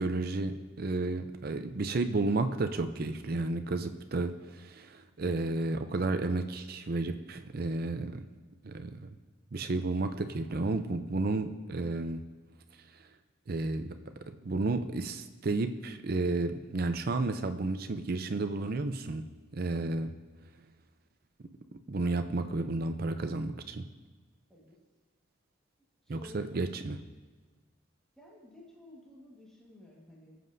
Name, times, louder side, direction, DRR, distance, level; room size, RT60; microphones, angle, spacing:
voice 1, 0.0-8.2 8.6-9.1 9.5-12.2 13.5-13.9 14.4-19.2 19.5-20.1 21.9-23.8 26.1-27.0, right 2 dB, 50° right, 8 dB, 0.5 m, -32 dB
voice 2, 26.0-26.7 28.2-30.4, left 1 dB, 5° left, -5 dB, 1.6 m, -53 dB
21.5 x 7.6 x 2.7 m, 1.4 s
head